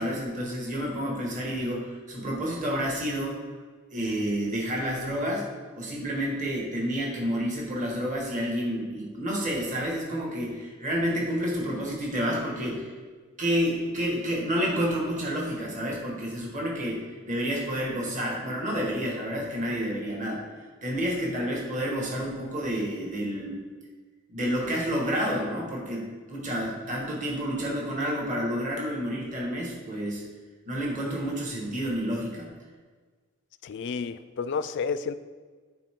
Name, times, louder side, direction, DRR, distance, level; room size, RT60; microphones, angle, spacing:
voice 1, 0.0-3.4 3.9-5.5 5.7-12.9 13.4-20.4 20.8-23.6 24.3-30.2 30.7-32.5, equal, 35° right, -2 dB, 1.6 m, -29 dB
voice 2, 33.6-35.2, left 5 dB, 55° left, 13 dB, 0.4 m, -31 dB
9.8 x 4.6 x 3.6 m, 1.4 s
head